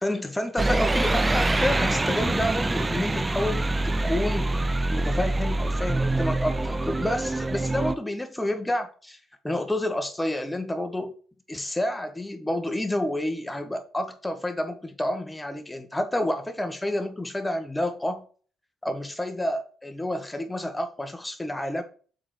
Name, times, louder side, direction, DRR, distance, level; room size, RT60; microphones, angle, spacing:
voice 1, 0.0-4.5 4.9-9.2 9.4-11.1 11.5-18.2 18.8-21.8, left 1 dB, 10° left, 1.5 m, -29 dB
sound 1, 0.6-7.9, right 2 dB, 20° right, 0.5 m, -25 dB
7.7 x 4.1 x 4.5 m
cardioid pair, 90°, 0 cm